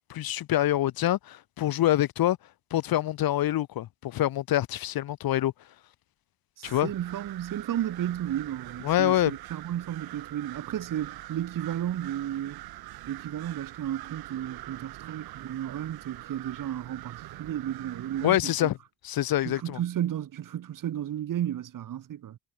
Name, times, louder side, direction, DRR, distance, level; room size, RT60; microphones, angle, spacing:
voice 1, 0.1-2.4 2.7-5.5 6.6-6.9 8.8-9.3 18.2-18.8 19.0-19.8, left 13 dB, 75° left, 1.4 m, -26 dB
voice 2, 6.6-12.6 13.1-18.7 19.4-22.4, right 11 dB, 60° right, 1.1 m, -33 dB
sound 1, 6.6-18.4, right 17 dB, 90° right, 3.8 m, -44 dB
supercardioid pair, 60°, 36 cm